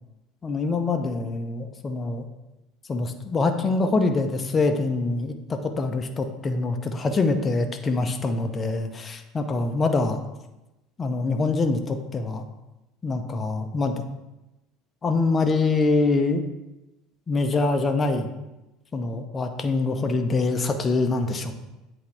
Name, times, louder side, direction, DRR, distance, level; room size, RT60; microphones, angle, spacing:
voice 1, 0.4-2.3 2.9-9.0 9.3-10.2 11.0-12.4 13.0-13.9 15.0-16.4 17.3-18.3 18.9-21.5, left 3 dB, 25° left, 6 dB, 0.6 m, -24 dB
8.1 x 3.8 x 3.3 m, 0.99 s
figure-of-eight pair, 70°, 0 cm